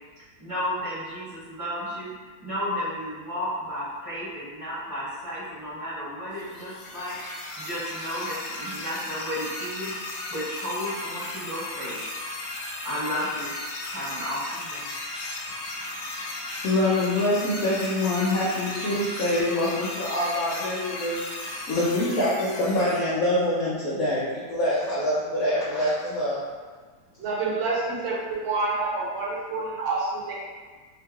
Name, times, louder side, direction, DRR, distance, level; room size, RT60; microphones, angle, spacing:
voice 1, 0.4-7.2 7.6-9.9 10.3-12.0 12.8-13.5 13.9-14.9, equal, 20° right, -13 dB, 1.3 m, -33 dB
sound 1, 6.3-23.0, left 2 dB, 90° left, 1.4 m, -35 dB
voice 2, 16.6-26.4, left 1 dB, 70° left, -8 dB, 0.8 m, -25 dB
voice 3, 27.2-30.3, right 3 dB, 80° right, -5 dB, 1.5 m, -28 dB
3.6 x 2.8 x 2.3 m, 1.5 s
omnidirectional pair, 2.1 m